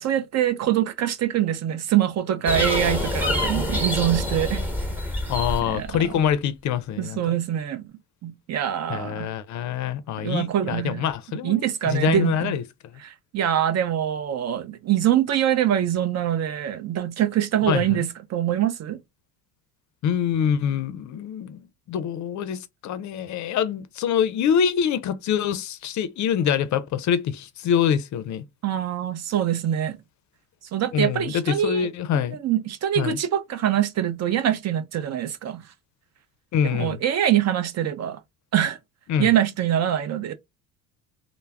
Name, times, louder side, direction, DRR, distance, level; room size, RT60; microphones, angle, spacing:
voice 1, 0.0-4.7 5.7-6.2 7.0-7.8 8.2-9.3 10.2-11.1 11.4-12.6 13.0-19.0 28.6-30.0 30.7-31.9 32.1-35.6 36.6-38.2 38.5-38.8 39.2-40.3, right 11 dB, 40° right, 0.5 m, -24 dB
sound 1, 2.5-6.0, left 1 dB, 5° right, 1.0 m, -26 dB
voice 2, 5.3-7.2 8.9-12.6 17.7-18.0 20.0-21.6 21.9-28.4 30.9-32.4 33.0-33.2 36.5-37.0 39.1-39.3, left 8 dB, 50° left, 0.5 m, -25 dB
2.2 x 2.1 x 3.3 m
supercardioid pair, 80°, 39 cm